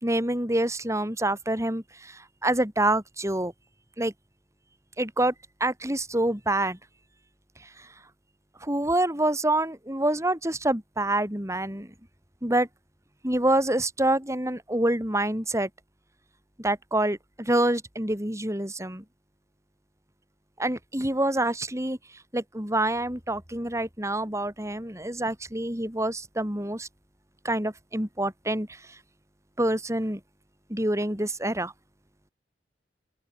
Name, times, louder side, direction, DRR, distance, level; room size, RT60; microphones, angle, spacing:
voice 1, 0.0-3.5 4.0-4.1 5.0-5.3 5.6-6.8 7.8-7.9 8.6-11.9 12.4-12.7 13.2-15.7 16.6-19.0 20.6-22.0 22.3-26.9 27.4-28.8 29.6-30.2 30.7-31.7, right 1 dB, 15° right, 4.1 m, -26 dB
open air
head